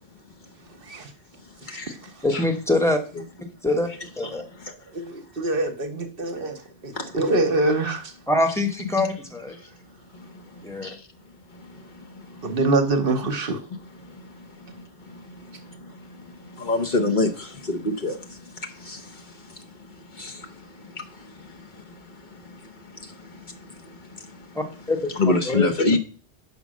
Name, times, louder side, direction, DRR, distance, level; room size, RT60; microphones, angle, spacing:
voice 1, 2.2-3.0 3.6-3.9 4.2-4.4 8.3-9.6 10.6-11.0 24.5-25.0 25.5-25.7, left 2 dB, 5° left, 1.1 m, -24 dB
voice 2, 4.9-6.6 6.8-8.1 12.4-13.6, right 2 dB, 55° right, 1.0 m, -24 dB
voice 3, 16.6-18.2 18.9-19.0 20.2-20.3 25.1-26.0, left 2 dB, 45° left, 1.0 m, -24 dB
5.6 x 5.1 x 6.2 m
omnidirectional pair, 1.1 m